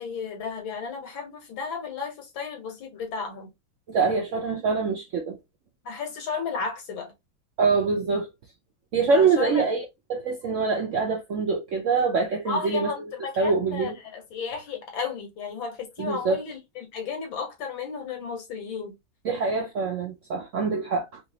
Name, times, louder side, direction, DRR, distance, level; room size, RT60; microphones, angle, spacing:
voice 1, 0.0-3.5 5.8-7.1 9.1-9.6 12.5-18.9, left 5 dB, 80° left, 2.0 m, -33 dB
voice 2, 3.9-5.4 7.6-8.3 8.9-9.8 10.1-12.9 13.4-14.0 16.0-16.4 19.2-21.2, right 4 dB, 70° right, 0.7 m, -24 dB
3.9 x 2.8 x 2.7 m
omnidirectional pair, 2.1 m